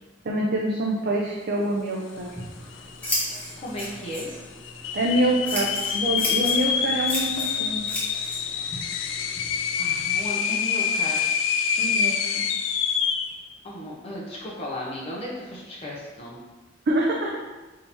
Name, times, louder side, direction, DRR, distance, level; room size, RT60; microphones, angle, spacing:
voice 1, 0.2-2.3 4.9-8.0 11.8-12.4 16.9-17.3, right 1 dB, 55° right, -2 dB, 0.5 m, -26 dB
Scissors, 2.1-10.3, left 1 dB, 5° left, 1.0 m, -35 dB
sound 1, 2.4-2.5 2.7-3.3 3.8-3.9 4.6-13.4, left 7 dB, 80° left, 0.3 m, -26 dB
voice 2, 3.6-4.3 8.7-8.8 9.8-11.3 13.6-16.4, equal, 30° left, -6 dB, 0.7 m, -35 dB
3.7 x 2.7 x 4.2 m, 1.2 s
head